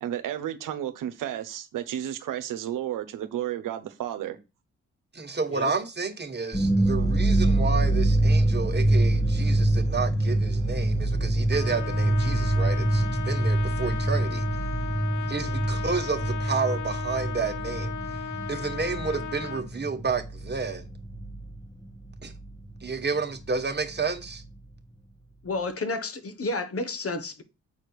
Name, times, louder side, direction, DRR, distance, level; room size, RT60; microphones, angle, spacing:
voice 1, 0.0-4.4, right 11 dB, 85° right, 1.0 m, -32 dB
voice 2, 5.1-14.5 15.3-17.9 18.5-20.9 22.2-22.3 22.8-24.4, right 4 dB, 35° right, 1.7 m, -31 dB
sound 1, 6.5-21.6 21.9-23.0 23.3-23.4 23.8-24.5, right 1 dB, 10° left, 1.3 m, -25 dB
Trumpet, 11.5-19.7, left 7 dB, 65° left, 0.8 m, -36 dB
voice 3, 25.4-27.4, left 3 dB, 45° left, 1.5 m, -31 dB
7.6 x 4.4 x 4.8 m
supercardioid pair, 55°, 31 cm